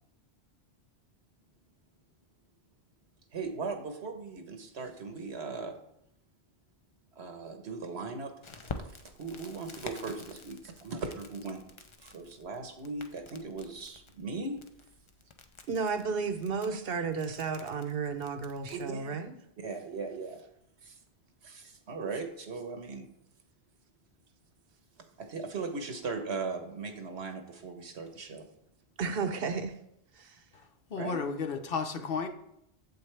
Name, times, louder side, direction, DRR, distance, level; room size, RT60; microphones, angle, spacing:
voice 1, 3.3-5.7 7.2-8.3 8.6-11.6 12.0-14.6 18.7-19.2 19.6-20.4 20.8-21.0 21.4-23.1 25.2-28.4 31.0-31.2, right 4 dB, 85° right, 6 dB, 1.3 m, -38 dB
Crackle, 8.4-18.9, left 4 dB, 35° left, 0.5 m, -49 dB
voice 2, 15.7-19.3 29.0-29.7 30.2-30.4, right 5 dB, 65° right, 8 dB, 0.9 m, -33 dB
voice 3, 30.5-32.3, left 5 dB, 60° left, 7 dB, 1.0 m, -34 dB
8.1 x 7.7 x 3.3 m, 0.75 s
omnidirectional pair, 1.1 m